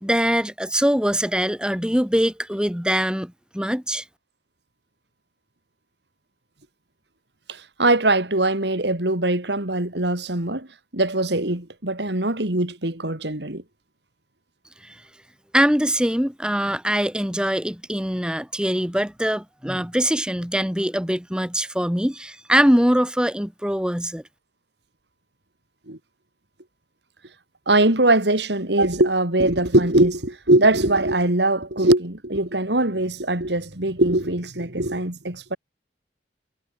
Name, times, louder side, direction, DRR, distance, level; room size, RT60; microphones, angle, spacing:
voice 1, 0.0-4.0 14.8-15.0 15.5-24.2, equal, 5° right, 1.8 m, -22 dB
voice 2, 7.5-10.7 10.9-13.6 25.9-26.0 27.7-35.6, right 2 dB, 70° right, 3.1 m, -21 dB
head